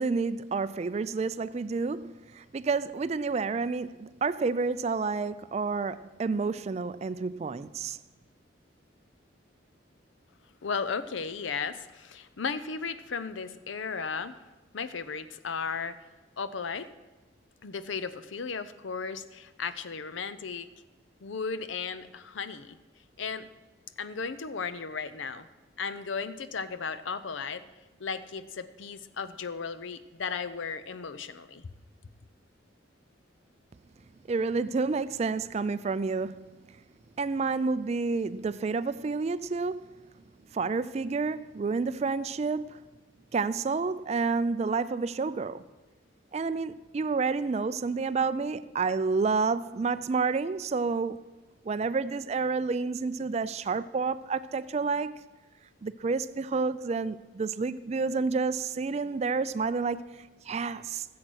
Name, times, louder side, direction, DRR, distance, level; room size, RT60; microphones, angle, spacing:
voice 1, 0.0-8.0 34.3-36.6 37.2-40.1 40.5-42.8 43.3-45.6 46.3-51.3 51.7-55.2 55.8-61.1, right 4 dB, 35° right, 0.3 m, -29 dB
voice 2, 10.6-14.4 14.7-16.0 16.4-16.9 17.6-20.7 21.2-22.8 23.2-23.5 24.0-25.5 25.8-27.6 28.0-31.7, left 5 dB, 75° left, 0.6 m, -35 dB
14.0 x 7.7 x 6.3 m
head